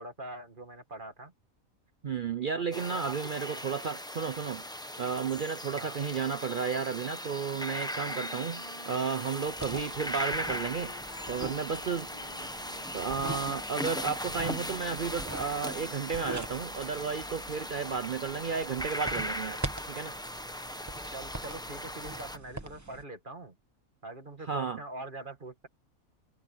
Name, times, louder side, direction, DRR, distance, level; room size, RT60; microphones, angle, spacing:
voice 1, 0.0-1.3 2.5-3.6 5.7-6.1 21.1-23.5 24.0-25.7, right 2 dB, 35° right, 2.2 m, -44 dB
voice 2, 2.0-4.7 5.0-10.9 11.3-12.1 12.9-20.1 24.4-24.8, right 6 dB, 55° right, 0.6 m, -33 dB
sound 1, 2.7-22.4, equal, 5° left, 0.8 m, -38 dB
Wind instrument woodwind instrument, 8.0-14.8, left 2 dB, 25° left, 1.9 m, -52 dB
sound 2, 9.5-23.0, right 2 dB, 15° right, 1.1 m, -43 dB
omnidirectional pair, 1.5 m